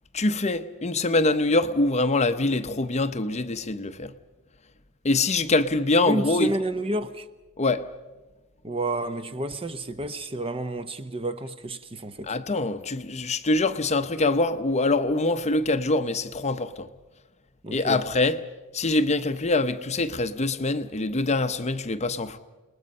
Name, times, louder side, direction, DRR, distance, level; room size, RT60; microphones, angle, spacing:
voice 1, 0.1-4.1 5.0-6.5 7.6-7.9 12.2-16.9 17.7-18.4 18.7-22.4, left 2 dB, 30° left, 0.8 m, -24 dB
voice 2, 6.0-7.3 8.6-12.3 17.6-18.0, right 1 dB, 25° right, 0.9 m, -30 dB
29.0 x 20.5 x 5.5 m
head